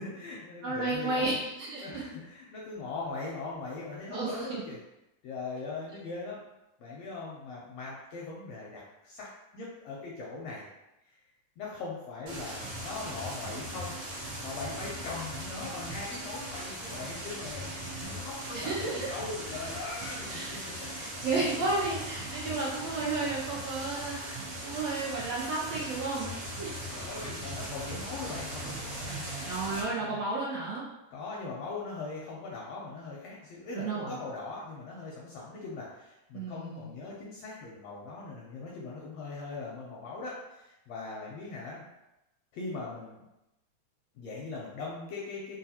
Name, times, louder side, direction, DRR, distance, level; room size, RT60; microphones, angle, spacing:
voice 1, 0.0-1.3 1.8-4.8 5.2-6.4 6.8-10.6 11.6-20.9 26.8-29.6 29.8-30.2 31.1-41.8 42.5-43.2 44.1-45.6, left 3 dB, 80° left, -4 dB, 1.5 m, -40 dB
voice 2, 0.6-2.0 4.1-4.5 18.5-19.1 20.3-20.5 21.0-26.3 26.6-26.7 29.4-30.8 33.7-34.1 36.3-36.9, right 3 dB, 75° right, -5 dB, 1.6 m, -32 dB
sound 1, 12.3-29.8, right 1 dB, 60° right, 1.4 m, -39 dB
4.7 x 2.2 x 2.8 m, 0.92 s
omnidirectional pair, 3.4 m